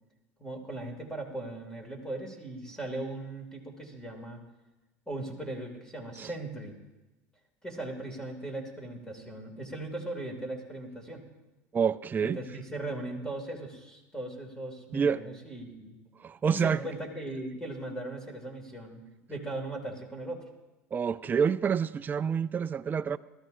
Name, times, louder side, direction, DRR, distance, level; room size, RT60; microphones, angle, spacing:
voice 1, 0.4-4.4 5.1-6.7 7.6-11.3 12.2-16.0 16.5-19.0 19.3-20.5, right 2 dB, 10° left, 2.8 m, -38 dB
voice 2, 11.7-12.4 14.9-15.2 16.2-16.8 20.9-23.2, right 7 dB, 20° right, 0.4 m, -27 dB
19.5 x 13.5 x 2.7 m
supercardioid pair, 100°, 9 cm